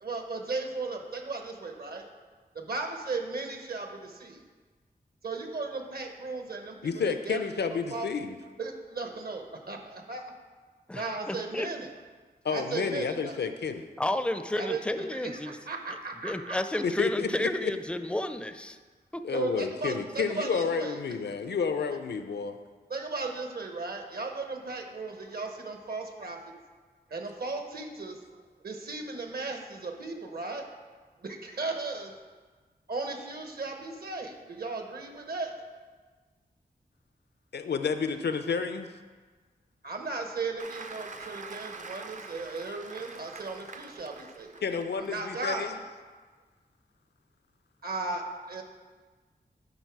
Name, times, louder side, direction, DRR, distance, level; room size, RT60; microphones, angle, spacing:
voice 1, 0.0-2.1 2.5-4.4 5.2-6.8 7.0-7.5 7.9-8.1 8.6-9.8 10.1-10.2 10.9-11.9 12.5-13.4 14.6-14.8 15.1-16.6 19.3-21.0 22.9-26.5 27.1-28.2 28.6-30.6 31.2-32.1 32.9-35.5 39.8-44.6 45.0-45.7 47.8-48.6, right 3 dB, 65° right, 4 dB, 1.0 m, -36 dB
voice 2, 6.8-8.4 12.4-13.9 16.8-17.7 19.2-22.6 37.5-38.9 44.6-45.8, left 5 dB, 80° left, 8 dB, 0.5 m, -30 dB
voice 3, 10.9-11.7 14.0-15.6 16.2-18.8 19.1-19.2, left 1 dB, 5° left, 9 dB, 0.4 m, -31 dB
Applause, 40.6-45.1 45.5-45.8, right 4 dB, 45° right, 0.5 m, -45 dB
11.0 x 3.8 x 4.7 m, 1.4 s
wide cardioid pair, 65°, 17 cm